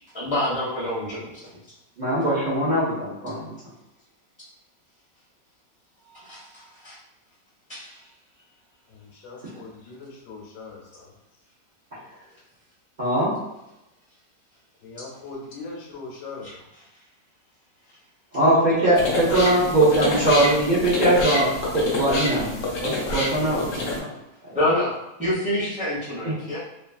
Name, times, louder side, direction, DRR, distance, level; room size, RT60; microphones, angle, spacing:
voice 1, 0.1-1.4 6.1-7.0 7.7-8.0 16.4-16.8 24.5-24.9 25.2-26.6, left 1 dB, 10° right, -8 dB, 0.5 m, -27 dB
voice 2, 2.0-3.5 13.0-13.3 18.3-21.5 21.7-22.5 22.8-24.1 26.2-26.3, right 1 dB, 75° right, -9 dB, 0.4 m, -21 dB
voice 3, 9.2-11.1 14.8-16.5, left 3 dB, 85° left, -2 dB, 1.4 m, -40 dB
sound 1, 18.9-24.0, left 2 dB, 60° left, 0.8 m, -27 dB
3.1 x 2.5 x 2.3 m, 0.91 s
omnidirectional pair, 1.9 m